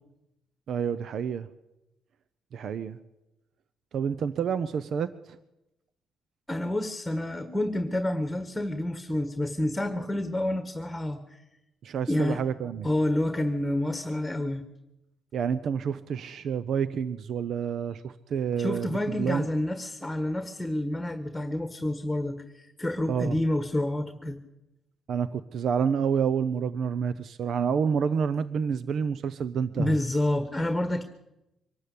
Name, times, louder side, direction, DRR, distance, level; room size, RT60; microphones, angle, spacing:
voice 1, 0.7-1.5 2.5-3.0 3.9-5.1 11.8-12.9 15.3-19.5 23.1-23.3 25.1-29.9, right 7 dB, 65° right, 14 dB, 0.8 m, -28 dB
voice 2, 6.5-11.4 12.1-12.4 12.8-14.6 18.6-24.4 29.7-31.0, left 1 dB, 5° left, 8 dB, 1.6 m, -28 dB
24.0 x 12.5 x 8.5 m, 0.93 s
cardioid pair, 90°, 0 cm